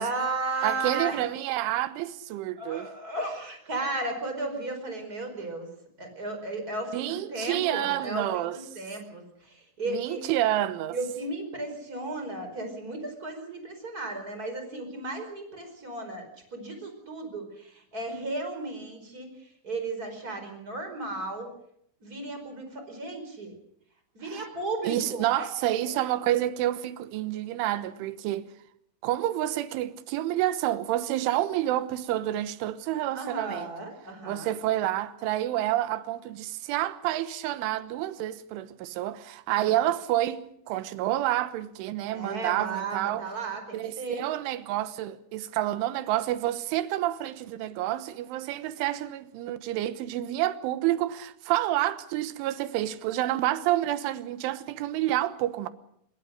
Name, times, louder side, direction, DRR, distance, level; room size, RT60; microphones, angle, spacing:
voice 1, 0.0-1.2 2.6-5.7 6.0-10.2 10.9-21.5 22.0-23.6 24.1-25.5 33.1-34.5 39.5-39.7 42.1-44.2, right 2 dB, 20° right, 4.6 m, -35 dB
voice 2, 0.6-2.9 6.9-8.6 9.9-11.0 24.3-24.5 24.8-28.5 29.0-33.7 34.3-43.2 43.7-55.7, right 14 dB, 75° right, 3.4 m, -29 dB
24.0 x 21.0 x 6.5 m
omnidirectional pair, 6.0 m